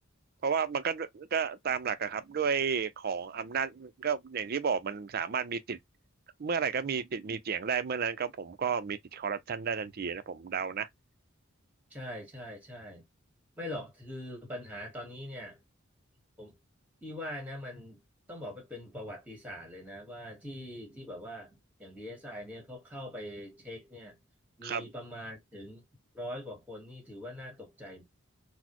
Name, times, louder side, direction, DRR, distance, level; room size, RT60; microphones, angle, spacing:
voice 1, 0.4-5.8 6.4-10.9 24.6-24.9, right 6 dB, 50° right, 0.4 m, -32 dB
voice 2, 11.9-13.0 13.6-15.6 16.4-16.6 17.0-18.0 18.3-24.2 24.6-25.8 26.1-28.0, left 1 dB, 10° right, 1.6 m, -42 dB
4.0 x 2.0 x 2.9 m
head